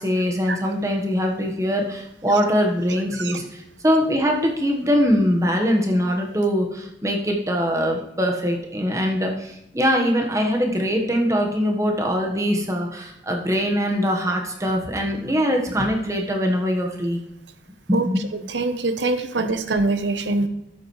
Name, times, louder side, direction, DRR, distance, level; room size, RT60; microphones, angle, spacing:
voice 1, 0.0-17.2 17.9-18.2 19.4-19.5, equal, 15° right, 1 dB, 1.2 m, -22 dB
voice 2, 18.5-20.5, right 3 dB, 85° right, 10 dB, 0.9 m, -23 dB
11.5 x 8.3 x 3.2 m, 0.83 s
head